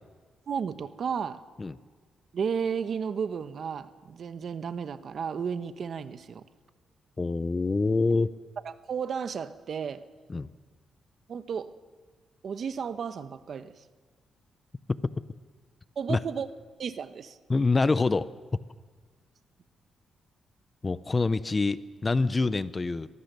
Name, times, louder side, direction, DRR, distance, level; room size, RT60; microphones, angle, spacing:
voice 1, 0.5-1.4 2.3-6.4 8.6-10.0 11.3-11.7 12.4-13.7 16.0-16.5 16.8-17.4, right 6 dB, 55° right, 12 dB, 1.0 m, -33 dB
voice 2, 7.2-8.3 10.3-10.5 16.1-16.2 17.5-18.3 20.8-23.1, left 3 dB, 25° left, 15 dB, 0.7 m, -26 dB
24.0 x 18.5 x 6.8 m, 1.5 s
cardioid pair, 115°, 0 cm